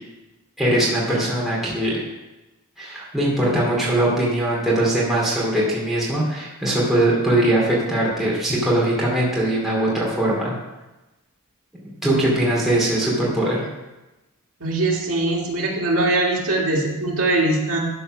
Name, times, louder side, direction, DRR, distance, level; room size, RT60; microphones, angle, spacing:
voice 1, 0.6-2.0 2.8-10.5 11.8-13.7, right 1 dB, ahead, -6 dB, 2.5 m, -21 dB
voice 2, 14.6-17.9, right 2 dB, 75° right, -2 dB, 2.1 m, -21 dB
12.0 x 4.4 x 6.1 m, 1.0 s
head